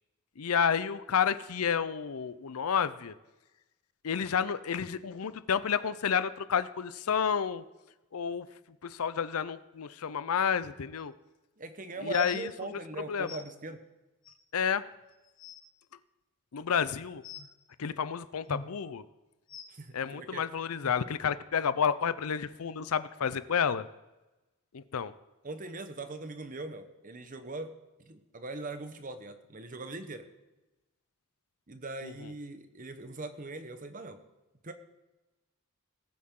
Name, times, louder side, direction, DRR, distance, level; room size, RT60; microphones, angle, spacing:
voice 1, 0.4-3.1 4.0-7.6 8.1-11.1 12.0-13.4 14.5-14.9 16.5-17.2 17.8-19.0 19.9-23.9 24.7-25.1 32.0-32.3, left 7 dB, 80° left, 15 dB, 0.6 m, -30 dB
voice 2, 11.6-13.8 19.7-20.4 25.4-27.7 28.0-30.3 31.7-34.2 34.6-34.7, right 2 dB, 35° right, 9 dB, 0.9 m, -41 dB
sound 1, 12.1-12.4 13.3-13.4 14.2-14.3 14.9-15.0 15.2-15.6 17.2-17.5 18.5-18.7 19.5-19.6 20.8-20.9 21.7-21.8 22.4-22.5, left 4 dB, 40° left, 1.5 m, -43 dB
19.0 x 8.6 x 3.7 m, 1.1 s
head